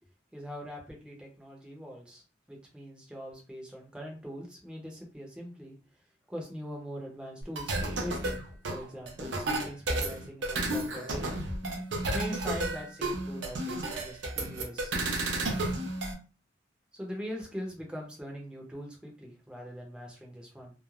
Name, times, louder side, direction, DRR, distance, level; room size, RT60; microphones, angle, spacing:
voice 1, 0.3-2.2 2.5-5.8 6.3-8.4 8.7-11.4 12.1-15.0 16.9-20.7, equal, 5° right, -1 dB, 0.6 m, -42 dB
sound 1, 7.4-16.1, right 2 dB, 75° right, 0.6 m, -32 dB
3.1 x 2.1 x 2.4 m, 0.34 s
head